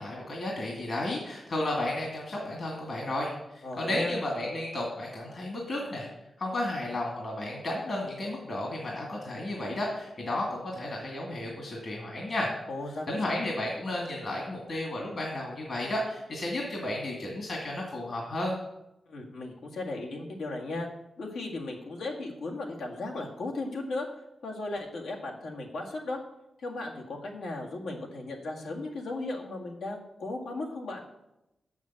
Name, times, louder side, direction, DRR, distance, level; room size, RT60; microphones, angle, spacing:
voice 1, 0.0-6.1 6.4-12.5 13.1-18.6, left 1 dB, 60° left, -1 dB, 2.2 m, -33 dB
voice 2, 3.6-4.2 12.7-13.4 19.1-20.9 21.2-24.1 24.4-26.2 26.6-31.0, left 2 dB, 85° left, -1 dB, 1.8 m, -36 dB
7.2 x 6.5 x 7.4 m, 0.89 s
cardioid pair, 60°, 0 cm